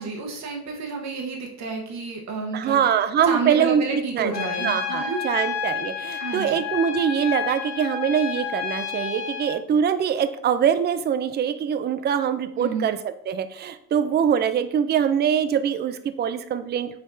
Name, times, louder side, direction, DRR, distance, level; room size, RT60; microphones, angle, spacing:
voice 1, 0.0-2.8 3.2-5.2 6.2-6.6 12.6-12.9, right 4 dB, 65° right, 1 dB, 1.1 m, -30 dB
voice 2, 2.5-4.3 4.6-13.0 13.3-17.0, right 8 dB, 35° right, 11 dB, 0.4 m, -23 dB
Trumpet, 4.3-9.5, left 7 dB, 60° left, 1.2 m, -30 dB
5.0 x 3.6 x 2.6 m, 0.70 s
cardioid pair, 90°, 30 cm